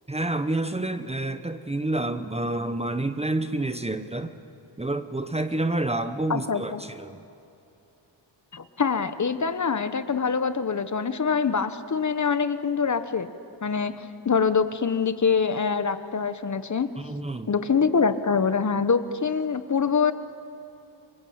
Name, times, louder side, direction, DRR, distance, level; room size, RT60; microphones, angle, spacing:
voice 1, 0.1-4.3 4.8-7.2 17.0-17.5, right 2 dB, 15° right, 10 dB, 0.9 m, -28 dB
voice 2, 6.3-6.8 8.5-13.3 13.6-13.9 14.2-16.9 17.5-20.1, left 5 dB, 40° left, 11 dB, 1.1 m, -24 dB
26.0 x 24.0 x 8.8 m, 2.8 s
wide cardioid pair, 145°, 46 cm